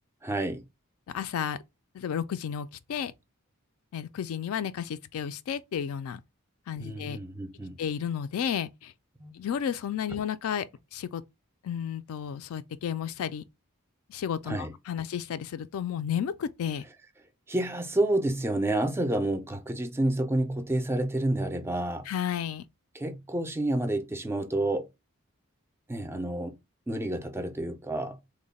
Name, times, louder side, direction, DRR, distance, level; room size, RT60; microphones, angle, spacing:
voice 1, 0.2-0.7 6.8-7.8 9.2-9.3 14.5-14.7 17.5-22.1 22.9-24.9 25.9-26.6 26.9-28.2, right 1 dB, 10° right, 0.3 m, -29 dB
voice 2, 1.1-1.6 1.9-3.1 3.9-6.2 6.7-7.2 7.8-8.9 9.3-10.7 10.9-11.2 11.6-13.4 14.1-16.8 22.1-22.6, left 8 dB, 75° left, 0.3 m, -32 dB
3.0 x 2.1 x 4.0 m
head